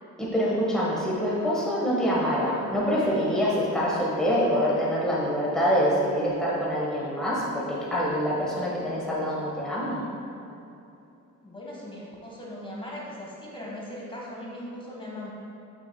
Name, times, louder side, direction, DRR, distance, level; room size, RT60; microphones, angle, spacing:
voice 1, 0.2-10.0, equal, ahead, -7 dB, 1.4 m, -25 dB
voice 2, 11.4-15.3, left 1 dB, 15° left, -4 dB, 1.6 m, -39 dB
10.0 x 6.2 x 2.3 m, 2.7 s
cardioid pair, 90°, 30 cm